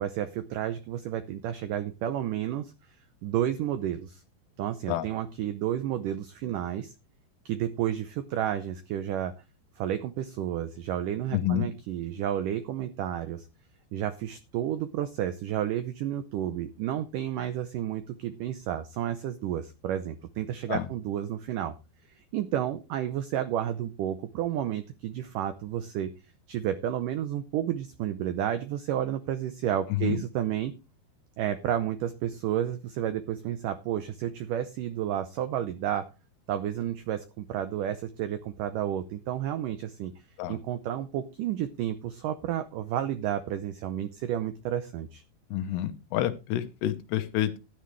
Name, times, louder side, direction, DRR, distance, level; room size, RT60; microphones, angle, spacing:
voice 1, 0.0-2.7 3.2-4.2 4.6-6.9 7.5-9.3 9.8-13.5 13.9-21.8 22.3-26.1 26.5-30.7 31.4-36.1 36.5-40.1 40.5-45.2, right 11 dB, 85° right, 11 dB, 1.8 m, -31 dB
voice 2, 11.3-11.7 20.7-20.8 30.0-30.2 40.4-40.6 45.5-47.6, left 12 dB, 85° left, 8 dB, 3.2 m, -28 dB
13.0 x 10.5 x 3.2 m, 0.28 s
omnidirectional pair, 4.8 m